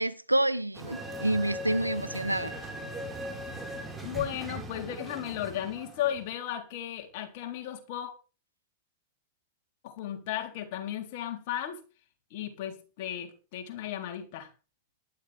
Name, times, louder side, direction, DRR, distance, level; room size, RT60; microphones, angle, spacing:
voice 1, 0.0-2.5, right 1 dB, 85° right, 1.0 m, -28 dB
sound 1, 0.7-6.3, right 1 dB, 10° right, 5.1 m, -39 dB
voice 2, 4.0-8.1 9.8-11.8 12.3-14.5, left 11 dB, 50° left, 3.9 m, -35 dB
18.5 x 13.0 x 3.6 m
figure-of-eight pair, 90°, 0 cm